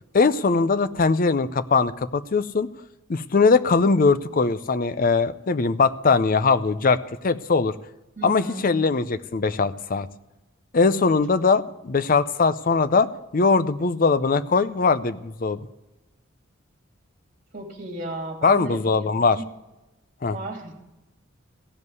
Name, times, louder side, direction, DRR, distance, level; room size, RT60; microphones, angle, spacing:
voice 1, 0.1-2.7 3.1-7.7 8.2-10.1 10.7-15.6 18.4-19.4 20.2-20.4, left 4 dB, 45° left, 13 dB, 0.5 m, -21 dB
voice 2, 8.2-8.7 17.5-19.1 19.3-19.5 20.3-20.7, right 2 dB, 40° right, 0 dB, 2.8 m, -35 dB
16.0 x 5.4 x 9.5 m, 0.98 s
head